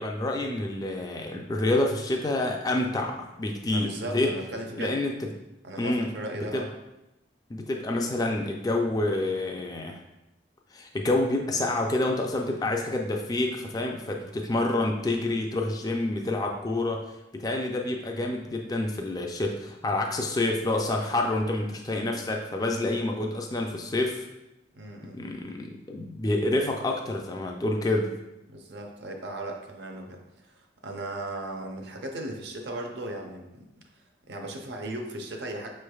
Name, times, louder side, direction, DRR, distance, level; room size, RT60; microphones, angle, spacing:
voice 1, 0.0-4.3 4.8-5.3 5.8-6.1 6.5-6.6 7.5-10.0 10.7-17.0 17.3-24.3 25.1-28.1, left 2 dB, 20° left, 1 dB, 0.3 m, -28 dB
voice 2, 3.7-5.0 5.6-6.7 24.7-25.2 28.5-30.2 30.5-33.7 34.3-35.7, right 1 dB, 65° right, 3 dB, 0.6 m, -37 dB
5.7 x 3.2 x 2.3 m, 0.92 s
head